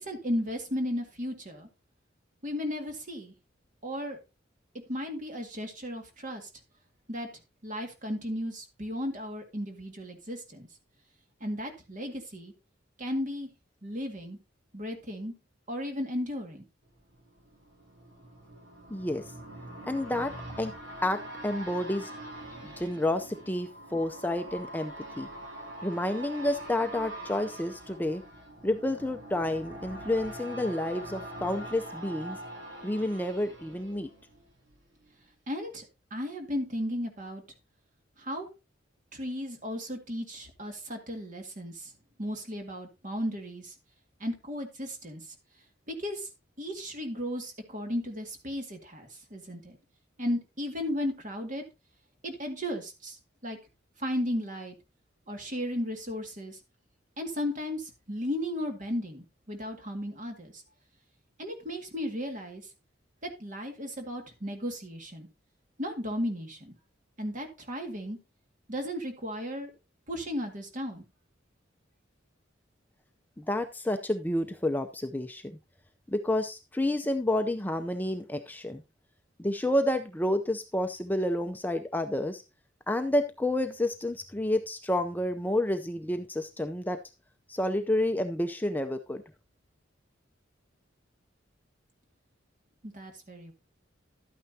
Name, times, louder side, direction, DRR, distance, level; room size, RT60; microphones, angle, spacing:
voice 1, 0.0-1.7 2.4-3.3 3.8-4.2 4.9-6.5 7.1-7.3 7.6-10.7 11.4-12.5 13.0-13.5 13.8-14.4 14.7-15.3 15.7-16.7 35.5-37.4 38.2-38.5 39.1-41.9 42.2-43.7 44.2-45.3 45.9-46.3 46.6-49.8 50.2-51.6 52.2-53.2 53.4-53.6 54.0-54.8 55.3-56.6 57.2-60.6 61.4-62.7 63.2-65.3 65.8-66.7 67.2-68.2 68.7-69.7 70.1-71.0 92.8-93.5, equal, 40° right, 4 dB, 2.0 m, -35 dB
sound 1, 17.0-34.8 35.1-35.2, right 1 dB, 80° right, 3.6 m, -44 dB
voice 2, 18.9-19.3 19.9-20.7 21.0-22.1 22.6-25.3 25.8-28.2 28.6-32.4 32.8-34.1 73.4-75.6 76.1-78.8 79.4-82.4 82.9-87.0 87.5-89.2, left 1 dB, 10° left, 7 dB, 0.5 m, -30 dB
12.0 x 9.1 x 2.8 m, 0.27 s
head